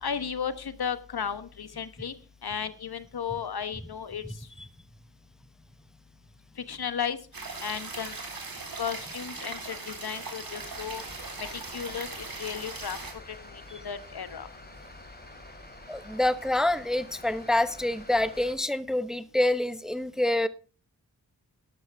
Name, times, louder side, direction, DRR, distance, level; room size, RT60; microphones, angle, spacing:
voice 1, 0.0-2.1 2.4-4.2 6.7-7.2 7.6-8.2 8.8-11.0 11.4-13.0 13.3-14.5, left 7 dB, 60° left, 12 dB, 1.3 m, -34 dB
sound 1, 7.3-13.1, right 3 dB, 55° right, 3.8 m, -39 dB
sound 2, 10.5-18.5, left 1 dB, 20° left, 3.2 m, -48 dB
voice 2, 15.9-20.5, left 1 dB, ahead, 13 dB, 0.9 m, -26 dB
12.5 x 11.0 x 3.5 m, 0.35 s
cardioid pair, 45°, 43 cm